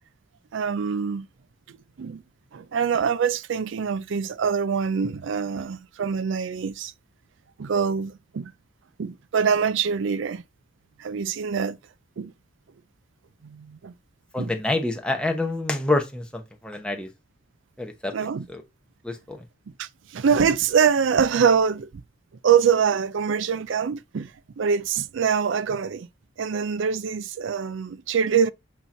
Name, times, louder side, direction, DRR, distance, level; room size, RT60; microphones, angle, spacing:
voice 1, 0.5-1.3 2.0-2.2 2.5-6.9 7.6-8.5 9.0-10.4 11.0-11.8 12.2-12.3 13.4-13.9 14.4-14.5 18.1-18.5 19.8-21.9 22.4-26.1 26.4-28.5, right 6 dB, 65° right, 0.4 m, -24 dB
voice 2, 14.3-17.1 17.8-18.1 18.5-18.6 19.0-19.4, left 2 dB, 5° left, 0.9 m, -27 dB
8.1 x 3.0 x 4.2 m
head